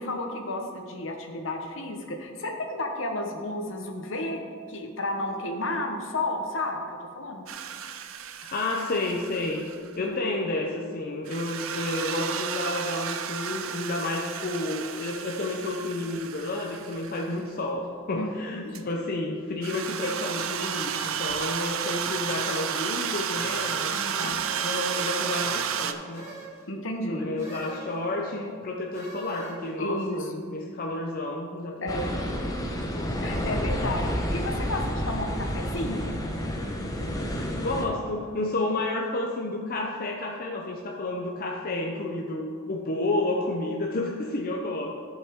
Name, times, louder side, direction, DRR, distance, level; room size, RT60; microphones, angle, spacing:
voice 1, 0.0-4.4 4.7-7.4 10.0-10.2 18.1-18.7 23.9-24.3 26.7-27.3 29.8-30.3 31.8-32.1 33.2-36.2, left 1 dB, 65° left, 3 dB, 1.1 m, -32 dB
sound 1, 7.5-9.9 11.3-17.4 18.7-18.8 19.6-25.9, right 8 dB, 75° right, 0.5 m, -32 dB
voice 2, 8.4-9.7 10.0-26.3 27.0-32.5 37.6-44.9, left 2 dB, 45° left, 0 dB, 0.6 m, -31 dB
sound 2, 24.4-25.4 26.1-26.6 27.4-28.0 28.9-29.7, right 3 dB, 15° right, 2.1 m, -42 dB
sound 3, 31.9-37.9, equal, 15° left, 0.9 m, -30 dB
14.5 x 5.5 x 3.6 m, 2.2 s
head